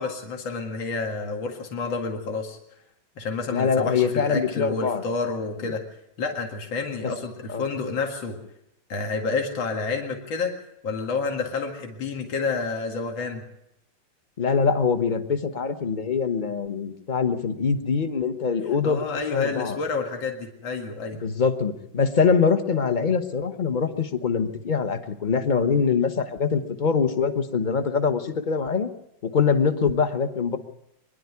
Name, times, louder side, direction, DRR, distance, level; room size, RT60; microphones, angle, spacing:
voice 1, 0.0-2.6 3.2-5.8 6.2-8.4 8.9-10.5 10.8-13.4 18.8-21.2, left 4 dB, 70° left, 2 dB, 2.8 m, -29 dB
voice 2, 3.5-5.0 5.6-5.8 7.0-7.1 7.5-7.6 14.4-19.0 19.3-19.8 21.2-28.9 29.2-30.6, left 5 dB, 30° left, 9 dB, 1.0 m, -23 dB
24.0 x 11.5 x 9.7 m, 0.82 s
omnidirectional pair, 2.3 m